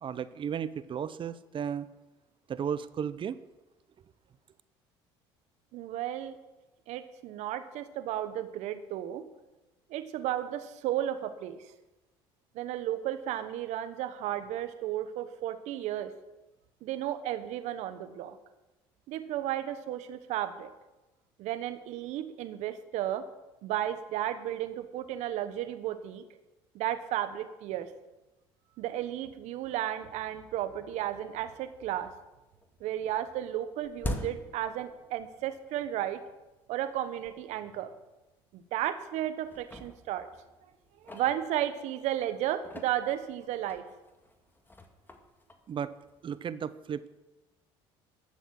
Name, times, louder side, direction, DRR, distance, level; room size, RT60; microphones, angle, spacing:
voice 1, 0.0-1.9 2.5-3.4 45.7-45.9 46.2-47.1, right 8 dB, 45° right, 15 dB, 0.8 m, -34 dB
voice 2, 5.7-6.4 6.9-9.3 9.9-11.7 12.5-16.1 16.8-18.4 19.1-20.7 21.4-23.2 23.6-26.2 26.7-27.9 28.8-32.1 32.8-36.2 36.7-37.9 38.5-40.3 41.0-43.8, right 12 dB, 70° right, 10 dB, 1.1 m, -33 dB
sound 1, 31.2-31.3 31.7-32.3 32.6-35.5 35.8-35.9 36.6-36.7 37.2-37.3 37.7-37.8 38.6-39.1 39.4-42.0 42.5-46.4, left 1 dB, 15° left, 1.8 m, -43 dB
12.5 x 7.1 x 7.8 m, 1.0 s
supercardioid pair, 70°, 12 cm